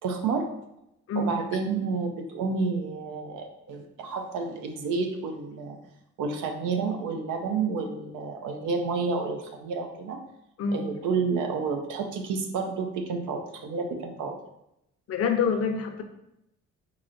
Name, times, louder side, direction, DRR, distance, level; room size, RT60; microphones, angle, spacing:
voice 1, 0.0-0.5 1.2-5.8 6.2-10.2 10.7-14.4, right 4 dB, 90° right, 4 dB, 0.6 m, -30 dB
voice 2, 15.1-16.0, left 5 dB, 55° left, 5 dB, 0.6 m, -26 dB
4.7 x 2.8 x 2.5 m, 0.83 s
cardioid pair, 90°, 30 cm